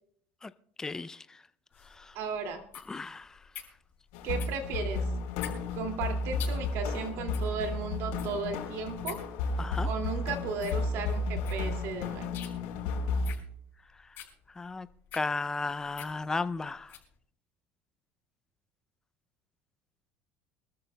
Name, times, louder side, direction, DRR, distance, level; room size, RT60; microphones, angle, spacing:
voice 1, 0.8-1.4 1.9-2.1 2.9-3.4 9.6-9.9 14.6-14.9 15.1-16.9, left 3 dB, 10° left, 0.4 m, -34 dB
sound 1, 1.7-17.1, left 11 dB, 45° left, 5.5 m, -48 dB
voice 2, 2.1-2.6 4.2-5.0 5.7-9.2 9.8-12.3, right 5 dB, 60° right, 2.3 m, -35 dB
sound 2, 4.1-13.3, left 3 dB, 80° left, 3.6 m, -33 dB
25.5 x 13.5 x 2.2 m
cardioid pair, 150°, 5 cm